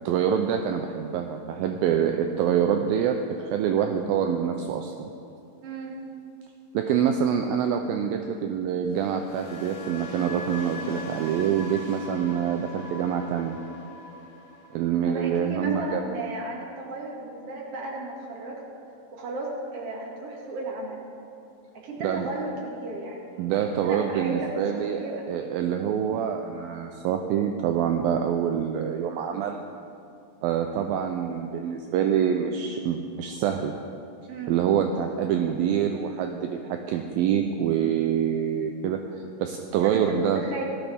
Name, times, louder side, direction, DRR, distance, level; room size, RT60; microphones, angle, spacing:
voice 1, 0.1-3.2 3.5-5.1 6.7-13.6 14.7-16.0 22.0-22.3 23.4-25.0 25.3-29.7 30.4-33.7 34.5-40.4, right 8 dB, 80° right, 4 dB, 2.2 m, -26 dB
voice 2, 5.6-6.0 15.1-18.6 19.1-21.1 21.7-23.4 23.8-25.2 34.3-34.6 39.8-40.7, right 2 dB, 45° right, -2 dB, 2.5 m, -35 dB
sound 1, 8.8-16.9 17.2-17.6, left 2 dB, 40° left, 2.9 m, -42 dB
18.0 x 14.5 x 3.5 m, 2.5 s
omnidirectional pair, 4.6 m